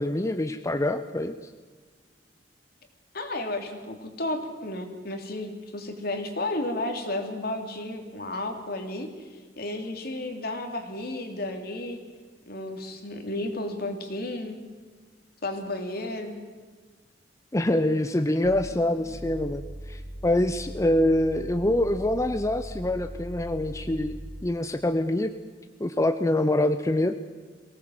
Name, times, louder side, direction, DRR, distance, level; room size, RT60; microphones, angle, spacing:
voice 1, 0.0-1.4 17.5-19.6 19.9-24.1 24.4-25.3 25.8-27.1, left 1 dB, 20° left, 9 dB, 0.7 m, -25 dB
voice 2, 3.1-12.0 12.5-14.6 15.4-16.4, left 1 dB, 60° left, 5 dB, 2.9 m, -33 dB
sound 1, 18.4-24.6, equal, 40° right, 1.5 m, -40 dB
23.5 x 17.5 x 7.8 m, 1.5 s
head